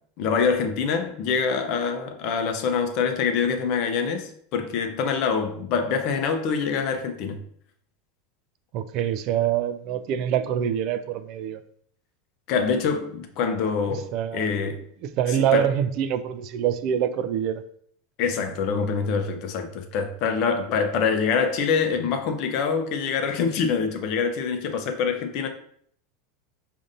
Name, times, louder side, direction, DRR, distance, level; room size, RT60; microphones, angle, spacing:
voice 1, 0.2-7.4 12.5-14.8 15.3-15.7 18.2-25.5, left 5 dB, 55° left, 0.6 m, -25 dB
voice 2, 8.7-11.6 13.9-14.5 15.0-17.6, right 10 dB, 55° right, 0.3 m, -25 dB
5.1 x 2.6 x 2.5 m
supercardioid pair, 115°, 0 cm